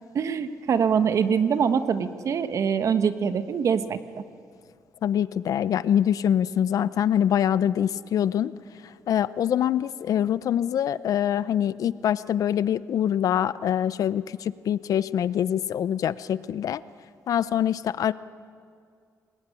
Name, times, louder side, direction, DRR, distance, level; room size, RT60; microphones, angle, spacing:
voice 1, 0.1-4.2, right 7 dB, 55° right, 10 dB, 1.4 m, -24 dB
voice 2, 5.0-8.6 8.8-16.8 17.3-18.1, left 10 dB, 70° left, 16 dB, 0.7 m, -24 dB
25.5 x 21.0 x 10.0 m, 2.3 s
cardioid pair, 125°, 6 cm